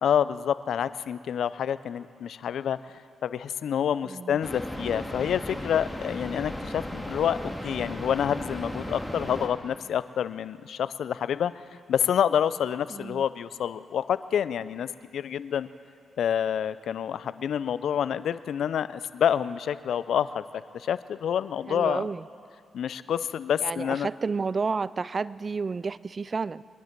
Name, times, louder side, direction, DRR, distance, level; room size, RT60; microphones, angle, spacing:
voice 1, 0.0-2.8 3.2-11.5 11.9-15.7 16.2-20.4 20.7-22.0 22.7-24.1, left 9 dB, 75° left, 16 dB, 0.4 m, -28 dB
voice 2, 4.0-4.4 12.9-13.3 21.7-22.3 23.6-26.6, right 4 dB, 45° right, 19 dB, 0.3 m, -31 dB
sound 1, 4.4-9.5, left 1 dB, 5° left, 1.9 m, -35 dB
23.5 x 11.0 x 4.5 m, 2.3 s
supercardioid pair, 55°, 0 cm